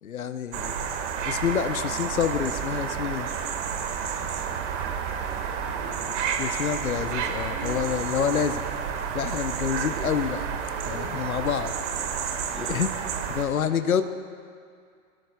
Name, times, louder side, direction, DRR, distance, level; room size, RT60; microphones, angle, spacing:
voice 1, 0.0-0.8 1.2-3.4 6.4-8.6 9.1-10.5 10.8-11.7 12.6-12.9 13.3-14.0, left 8 dB, 85° left, 9 dB, 0.8 m, -27 dB
sound 1, 0.5-13.4, right 7 dB, 55° right, 1.7 m, -30 dB
voice 2, 1.8-2.4 4.2-6.2 11.5-11.6 12.3-12.8, right 1 dB, ahead, -1 dB, 1.8 m, -47 dB
sound 2, 6.9-11.2 11.6-11.7 12.0-12.1 12.2-12.5, right 7 dB, 30° right, 1.3 m, -42 dB
25.0 x 18.0 x 2.3 m, 2.2 s
figure-of-eight pair, 100°, 41 cm